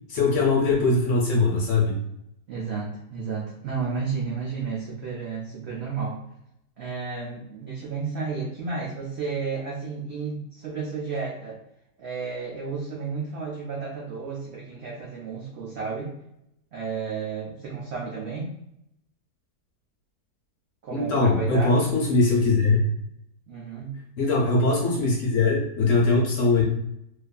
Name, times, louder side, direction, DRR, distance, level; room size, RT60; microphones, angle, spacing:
voice 1, 0.1-2.0 20.9-22.8 24.2-26.6, left 3 dB, 65° left, -2 dB, 0.9 m, -21 dB
voice 2, 2.5-6.2 6.8-11.6 12.0-16.1 16.7-18.6 20.8-21.9 23.5-24.0, right 5 dB, 75° right, -3 dB, 0.6 m, -32 dB
2.6 x 2.4 x 2.2 m, 0.79 s
omnidirectional pair, 1.7 m